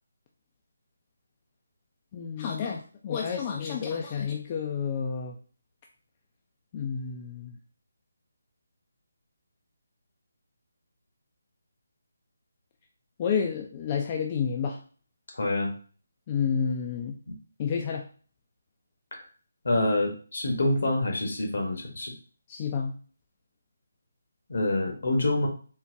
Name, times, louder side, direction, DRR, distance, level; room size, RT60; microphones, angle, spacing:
voice 1, 2.1-5.4 6.7-7.6 13.2-14.8 16.3-17.2 17.6-18.1 22.5-22.9, left 6 dB, 30° left, 1 dB, 0.3 m, -30 dB
voice 2, 15.3-15.7 17.3-17.4 19.1-19.2 19.6-22.1 24.5-25.5, left 2 dB, 60° left, 2 dB, 0.9 m, -26 dB
3.9 x 2.1 x 2.6 m, 0.40 s
figure-of-eight pair, 150°, 0 cm